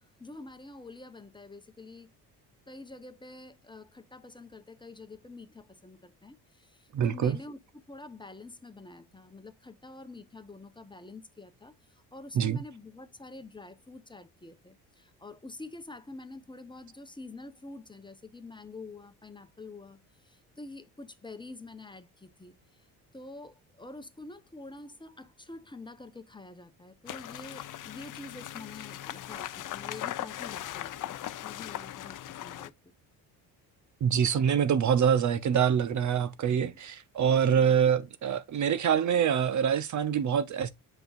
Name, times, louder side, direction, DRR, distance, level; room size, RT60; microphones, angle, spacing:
voice 1, 0.0-2.1 2.7-7.6 7.9-22.9 23.1-32.7, left 2 dB, 10° left, 0.9 m, -47 dB
voice 2, 6.9-7.4 12.3-12.6 34.0-40.7, right 8 dB, 45° right, 0.7 m, -25 dB
sound 1, 27.1-32.7, left 13 dB, 50° left, 0.7 m, -39 dB
7.7 x 5.4 x 2.5 m
supercardioid pair, 75°, 40 cm